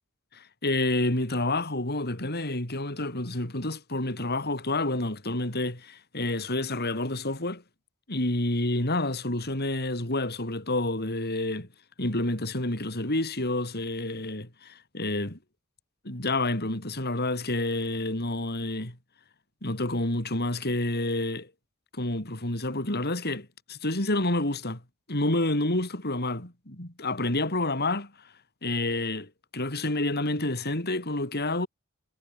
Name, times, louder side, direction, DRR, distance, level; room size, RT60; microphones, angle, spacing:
voice 1, 0.3-7.6 8.1-11.7 12.0-15.4 16.1-19.0 19.6-21.5 21.9-24.8 25.1-28.1 28.6-31.7, left 2 dB, 45° left, 5.2 m, -29 dB
head